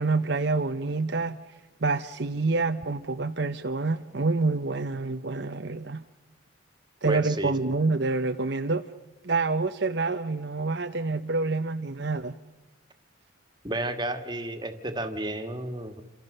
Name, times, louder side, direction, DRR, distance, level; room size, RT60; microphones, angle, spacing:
voice 1, 0.0-1.4 1.8-6.0 7.0-8.8 9.2-12.4, right 3 dB, 55° right, 0.9 m, -27 dB
voice 2, 7.1-7.5 13.6-16.0, right 1 dB, 20° right, 1.9 m, -32 dB
29.0 x 26.0 x 6.7 m
head